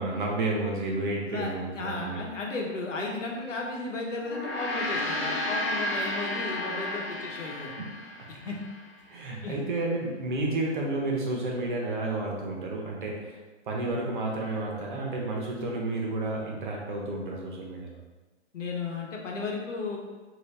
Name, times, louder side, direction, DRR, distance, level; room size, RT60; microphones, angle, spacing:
voice 1, 0.0-2.2 8.2-8.3 9.1-13.4 13.7-18.0, right 2 dB, 45° right, -2 dB, 0.7 m, -31 dB
voice 2, 1.3-7.7 8.3-8.6 9.4-9.6 18.5-20.0, left 3 dB, 80° left, 0 dB, 0.9 m, -34 dB
Gong, 4.2-8.8, left 1 dB, 50° left, 0.7 m, -32 dB
3.0 x 2.8 x 3.1 m, 1.3 s
hypercardioid pair, 155°, 36 cm